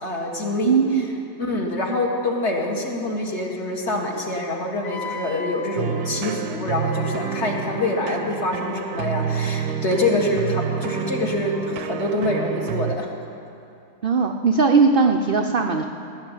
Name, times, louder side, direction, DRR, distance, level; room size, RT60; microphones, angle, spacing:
voice 1, 0.0-0.8 1.4-13.1, left 2 dB, 45° left, -1 dB, 2.0 m, -25 dB
voice 2, 0.6-1.1 14.0-15.8, right 4 dB, 60° right, 4 dB, 0.6 m, -19 dB
Wind instrument woodwind instrument, 4.8-9.5, left 3 dB, 65° left, 1.3 m, -40 dB
sound 1, 5.8-13.0, right 8 dB, 80° right, 1.2 m, -28 dB
16.5 x 6.7 x 10.0 m, 2.7 s
omnidirectional pair, 1.6 m